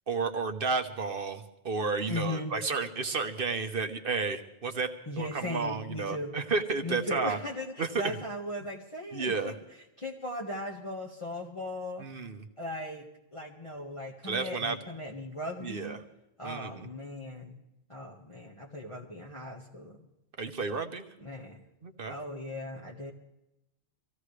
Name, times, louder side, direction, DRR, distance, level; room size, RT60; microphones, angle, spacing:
voice 1, 0.1-7.4 7.8-8.2 9.1-9.5 12.0-12.4 14.2-14.8 15.6-16.0 16.4-16.9 20.4-21.1 21.8-22.2, right 4 dB, 60° right, 6 dB, 1.2 m, -32 dB
voice 2, 2.1-2.5 5.1-6.3 6.8-9.5 10.0-12.1 12.6-16.0 16.4-17.6 17.9-20.1 21.2-21.6 22.1-23.1, left 1 dB, 30° left, -3 dB, 1.7 m, -38 dB
24.5 x 16.0 x 3.3 m, 0.87 s
omnidirectional pair, 1.1 m